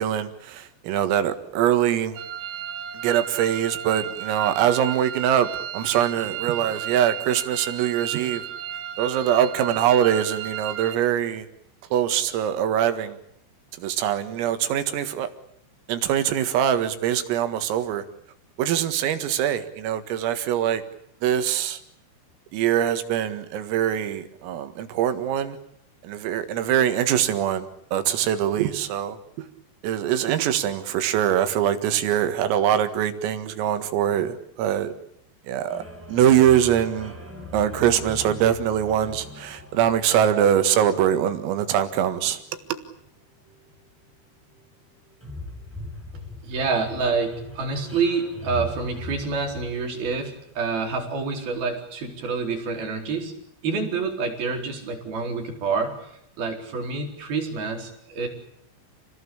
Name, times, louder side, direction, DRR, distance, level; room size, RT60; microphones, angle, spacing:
voice 1, 0.0-2.2 3.0-5.5 5.7-8.4 9.0-11.5 11.9-13.2 13.8-15.3 15.9-18.0 18.6-20.8 21.2-21.8 22.5-25.6 26.0-29.2 29.8-34.9 35.5-35.8 36.1-37.1 37.5-42.4, right 10 dB, 80° right, 4.4 m, -23 dB
sound 1, 2.1-11.0, right 10 dB, 65° right, 2.2 m, -33 dB
sound 2, 35.7-51.1, left 2 dB, ahead, 6.8 m, -41 dB
voice 2, 46.1-53.3 53.6-56.0 56.4-58.3, right 4 dB, 50° right, 5.9 m, -27 dB
29.5 x 19.0 x 8.7 m
omnidirectional pair, 5.9 m